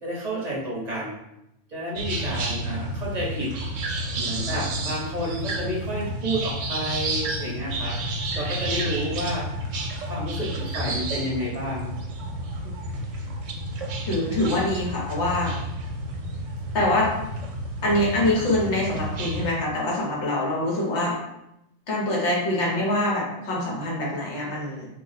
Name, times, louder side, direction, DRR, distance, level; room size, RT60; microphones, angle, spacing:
voice 1, 0.0-1.1 1.7-3.5 4.2-9.5 10.1-11.9, equal, 40° right, -5 dB, 0.9 m, -30 dB
sound 1, 2.0-19.5, right 1 dB, 75° right, 0.9 m, -31 dB
voice 2, 14.0-15.5 16.7-17.1 17.8-21.1 21.9-24.9, left 1 dB, 65° left, -4 dB, 1.1 m, -24 dB
2.6 x 2.0 x 3.9 m, 0.86 s
omnidirectional pair, 1.3 m